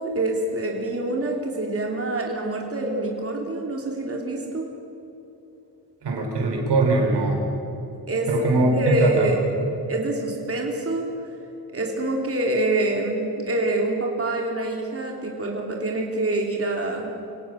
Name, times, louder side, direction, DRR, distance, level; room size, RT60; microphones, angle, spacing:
voice 1, 0.0-4.7 8.1-9.5 9.9-11.1 11.7-17.1, right 2 dB, 35° right, 0 dB, 3.2 m, -26 dB
voice 2, 6.0-7.4 8.3-9.3, right 2 dB, 80° right, 1 dB, 4.8 m, -21 dB
25.0 x 17.5 x 6.4 m, 3.0 s
cardioid pair, 95°, 40 cm